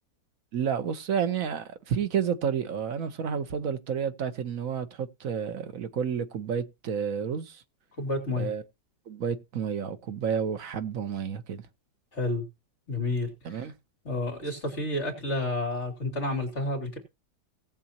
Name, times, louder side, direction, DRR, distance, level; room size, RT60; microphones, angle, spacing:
voice 1, 0.5-7.6 8.4-8.6 9.1-11.6 13.4-13.7, right 7 dB, 55° right, 1.2 m, -30 dB
voice 2, 8.0-8.5 12.1-12.4 12.9-13.7 14.0-17.0, left 2 dB, 40° left, 3.2 m, -30 dB
18.0 x 7.5 x 2.9 m
omnidirectional pair, 1.8 m